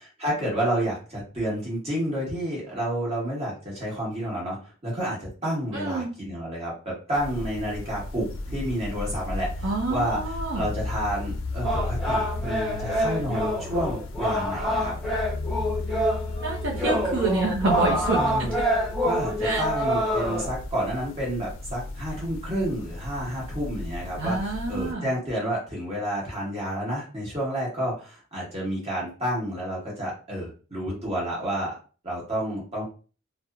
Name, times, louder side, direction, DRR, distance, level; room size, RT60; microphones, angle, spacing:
voice 1, 0.2-4.6 4.8-9.5 9.9-14.9 18.1-18.5 19.0-31.7 32.0-32.8, equal, 30° right, -5 dB, 1.3 m, -30 dB
voice 2, 5.7-6.1 9.6-10.6 16.4-18.5 19.4-19.6 24.2-25.1, right 3 dB, 65° right, -2 dB, 0.5 m, -27 dB
sound 1, 7.1-24.9, left 2 dB, 75° left, 0.4 m, -35 dB
sound 2, 11.6-20.5, equal, ahead, 0.7 m, -27 dB
2.9 x 2.0 x 2.3 m, 0.36 s
head